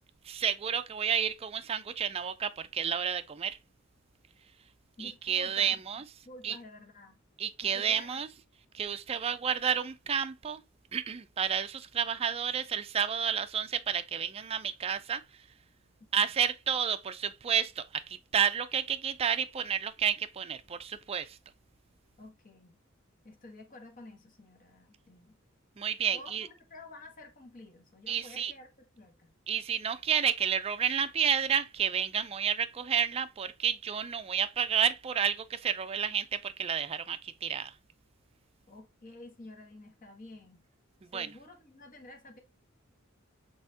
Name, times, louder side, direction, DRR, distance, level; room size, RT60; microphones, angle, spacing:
voice 1, 0.2-3.6 5.0-6.0 6.4-6.6 7.4-8.3 8.7-10.6 10.9-15.2 16.1-21.4 25.8-26.5 28.1-28.5 29.5-37.7 41.0-41.3, right 7 dB, 30° right, 0.4 m, -30 dB
voice 2, 5.0-5.8 6.2-7.2 7.6-8.2 16.2-16.3 22.2-22.8 23.2-25.4 26.1-29.3 38.7-40.6 41.1-42.4, left 2 dB, 45° left, 1.2 m, -51 dB
5.4 x 3.5 x 2.8 m
head